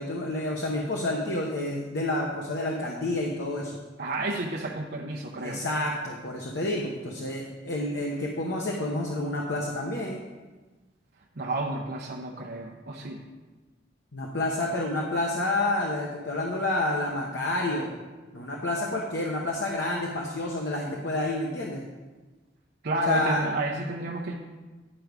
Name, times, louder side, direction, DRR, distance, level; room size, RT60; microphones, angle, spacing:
voice 1, 0.0-3.7 5.4-10.2 14.1-17.9 18.3-21.8 23.1-23.4, left 2 dB, 65° left, -1 dB, 0.9 m, -29 dB
voice 2, 4.0-5.6 11.4-13.2 22.8-24.3, right 2 dB, 55° right, -1 dB, 0.7 m, -31 dB
10.0 x 5.2 x 4.6 m, 1.2 s
head